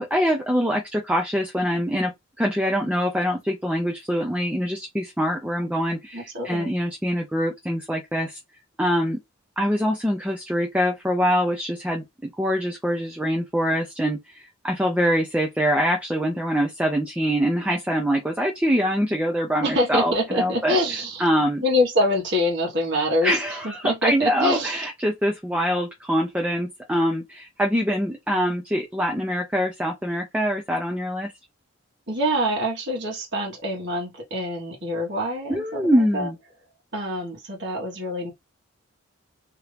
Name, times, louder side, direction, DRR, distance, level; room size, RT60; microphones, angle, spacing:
voice 1, 0.0-8.4 8.8-9.2 9.6-20.8 21.2-21.6 23.2-31.3 35.5-36.4, equal, 5° right, 0.4 m, -24 dB
voice 2, 6.1-6.7 19.6-21.2 21.6-23.3 23.6-24.9 32.1-36.3 36.9-38.3, equal, 55° right, 1.3 m, -25 dB
2.9 x 2.6 x 3.3 m
head